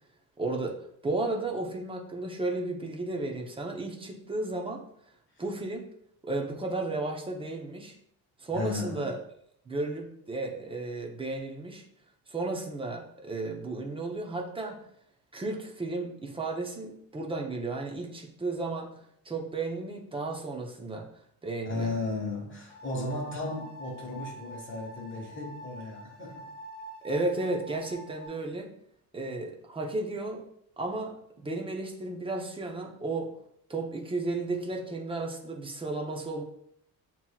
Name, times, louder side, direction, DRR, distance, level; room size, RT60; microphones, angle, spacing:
voice 1, 0.4-0.8 1.0-4.8 5.4-5.8 6.2-8.0 8.4-9.2 9.7-11.8 12.3-14.8 15.3-18.9 19.2-21.1 21.4-21.9 27.0-28.7 29.1-30.5 30.8-33.3 33.7-36.4, right 2 dB, 15° right, 1 dB, 0.6 m, -33 dB
voice 2, 8.5-9.1 21.6-26.5, left 3 dB, 35° left, -1 dB, 1.4 m, -35 dB
sound 1, 22.7-28.3, right 1 dB, 65° left, 1.1 m, -46 dB
7.5 x 2.9 x 2.3 m, 0.70 s
cardioid pair, 155°, 35 cm